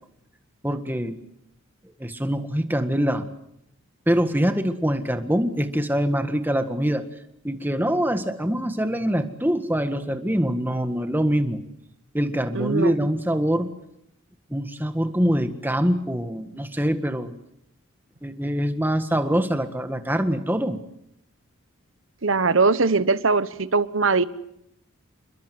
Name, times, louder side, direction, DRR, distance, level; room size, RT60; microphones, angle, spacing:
voice 1, 0.6-1.2 2.0-3.2 4.1-7.0 7.4-11.6 12.1-13.7 14.5-17.3 18.2-20.8, equal, 10° right, 8 dB, 1.7 m, -24 dB
voice 2, 12.5-13.1 22.2-24.2, right 4 dB, 65° right, 14 dB, 1.1 m, -21 dB
29.0 x 22.0 x 7.9 m, 0.79 s
head